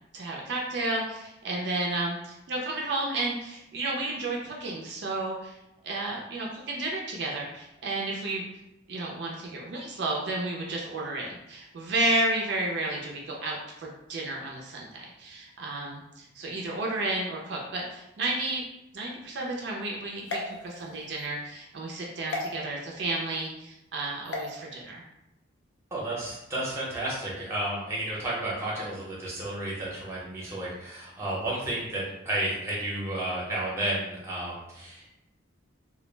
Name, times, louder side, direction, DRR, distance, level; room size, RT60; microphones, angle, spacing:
voice 1, 0.1-5.6 5.8-8.4 8.9-18.6 18.9-25.0, right 2 dB, 55° right, -2 dB, 0.4 m, -32 dB
sound 1, 20.2-21.3 22.3-22.5 24.2-24.5, left 2 dB, 70° left, 0.5 m, -35 dB
voice 2, 25.9-35.1, right 1 dB, 15° right, -6 dB, 0.6 m, -32 dB
2.2 x 2.0 x 3.1 m, 0.89 s
head